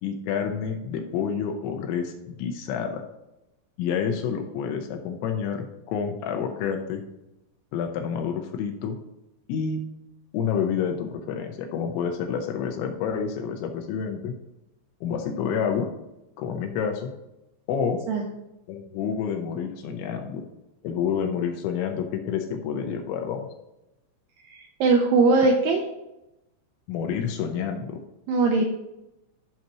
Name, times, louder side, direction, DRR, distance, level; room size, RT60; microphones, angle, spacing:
voice 1, 0.0-3.1 3.8-7.0 7.7-9.0 9.5-9.8 10.3-14.3 15.0-15.9 16.4-17.1 17.7-18.0 18.7-20.4 20.8-23.5 26.9-28.0, left 7 dB, 80° left, 4 dB, 2.9 m, -28 dB
voice 2, 24.5-25.8 28.3-28.6, right 3 dB, 80° right, 2 dB, 2.5 m, -20 dB
14.0 x 5.9 x 3.0 m, 0.92 s
omnidirectional pair, 5.6 m